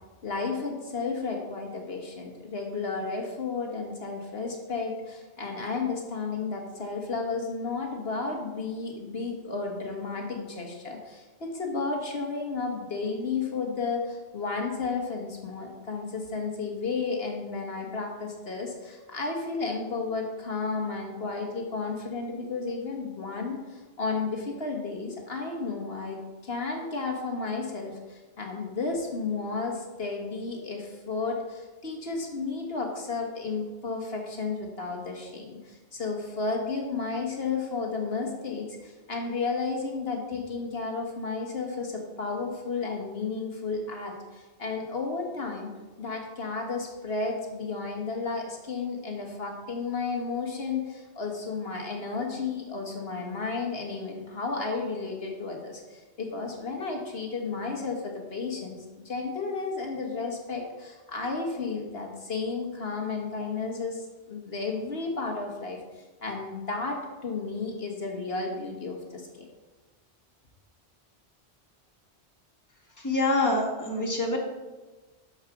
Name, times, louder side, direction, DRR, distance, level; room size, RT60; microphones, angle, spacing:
voice 1, 0.2-45.7 46.0-65.8 66.2-69.5, left 4 dB, 65° left, 1 dB, 1.6 m, -33 dB
voice 2, 73.0-74.4, left 2 dB, 15° left, -1 dB, 1.7 m, -26 dB
13.0 x 4.9 x 5.9 m, 1.2 s
omnidirectional pair, 1.1 m